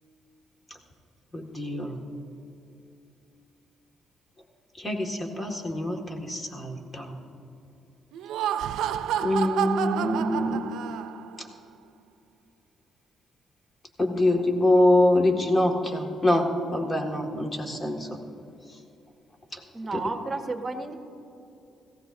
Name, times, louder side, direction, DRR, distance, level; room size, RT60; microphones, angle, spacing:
voice 1, 1.3-2.0 4.8-7.2 9.2-10.6 14.0-18.2 19.5-19.6 19.9-20.0, left 1 dB, 25° left, 1 dB, 1.9 m, -24 dB
Laughter, 8.1-11.4, right 10 dB, 85° right, 0.4 m, -29 dB
voice 2, 19.7-20.9, right 3 dB, 30° right, 5 dB, 1.3 m, -32 dB
18.0 x 15.5 x 2.7 m, 2.7 s
cardioid pair, 90°, 0 cm